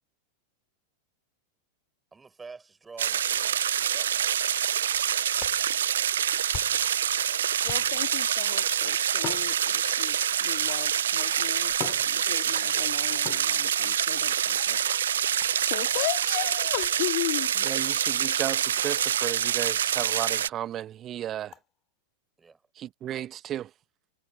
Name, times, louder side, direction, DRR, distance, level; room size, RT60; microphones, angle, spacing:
voice 1, 2.1-4.3 22.4-22.6, right 4 dB, 15° right, 7.0 m, -47 dB
sound 1, 3.0-20.5, right 9 dB, 65° right, 0.3 m, -26 dB
sound 2, 4.8-7.0 7.6-8.2 9.1-10.2 11.1-11.2 11.7-12.8 13.2-14.0 15.4-15.7 16.8-17.0 17.6-17.7 18.1-18.2 18.5-18.7 19.0-19.1 19.5-19.6 20.0-20.1 20.5-20.6 21.5-21.7, left 11 dB, 30° left, 6.9 m, -43 dB
voice 2, 7.6-15.0 15.6-17.5, left 30 dB, 45° left, 2.3 m, -36 dB
voice 3, 17.6-21.5 22.7-23.7, right 11 dB, 30° right, 1.1 m, -34 dB
figure-of-eight pair, 90°, 0 cm